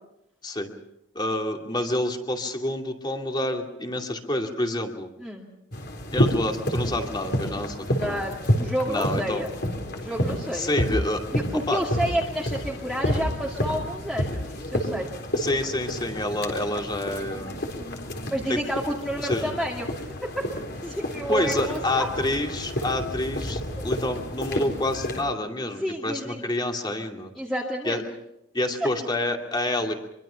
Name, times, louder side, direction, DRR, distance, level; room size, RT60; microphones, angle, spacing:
voice 1, 1.1-5.1 6.1-8.2 8.9-9.4 10.5-11.2 11.7-11.8 15.3-17.6 18.5-18.6 19.2-19.5 21.3-27.3 27.8-28.0 28.5-29.9, left 1 dB, 20° left, 3 dB, 2.5 m, -28 dB
sound 1, 5.7-25.2, equal, 55° left, 4.0 m, -30 dB
voice 2, 7.9-9.5 9.9-10.7 11.3-15.1 18.3-20.1 20.8-22.1 23.8-23.9 25.8-26.4 27.4-28.0, equal, ahead, -3 dB, 2.4 m, -30 dB
25.5 x 23.5 x 5.8 m, 0.84 s
head